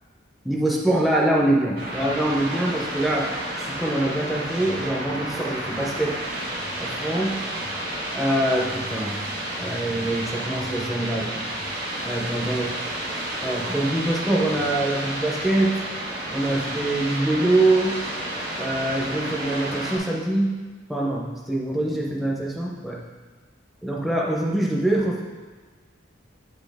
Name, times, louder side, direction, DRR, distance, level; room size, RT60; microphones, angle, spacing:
voice 1, 0.4-3.3 3.6-6.2 6.8-7.4 8.1-9.2 9.6-11.4 12.1-12.7 13.4-15.7 16.3-17.9 18.6-20.6 20.9-23.0 23.8-25.2, right 1 dB, ahead, -2 dB, 0.5 m, -24 dB
sound 1, 1.8-20.0, right 1 dB, 50° right, 1.4 m, -31 dB
7.8 x 4.2 x 3.4 m, 1.4 s
head